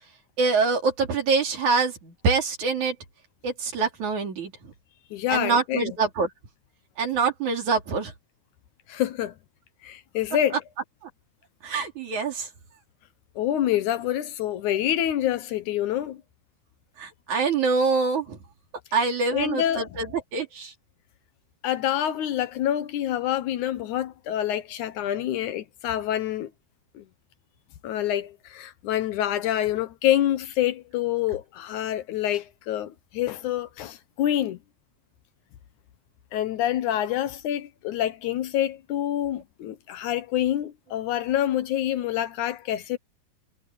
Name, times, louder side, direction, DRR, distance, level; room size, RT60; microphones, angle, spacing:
voice 1, 0.4-3.0 3.4-4.5 5.3-6.3 7.0-8.1 11.6-12.5 17.0-18.4 18.9-20.7, right 4 dB, 60° right, 4.9 m, -25 dB
voice 2, 5.1-5.9 8.9-9.3 9.8-10.6 13.4-16.2 19.3-19.9 21.6-26.5 27.0-27.1 27.8-34.6 36.3-43.0, left 11 dB, 70° left, 2.2 m, -27 dB
omnidirectional pair, 3.8 m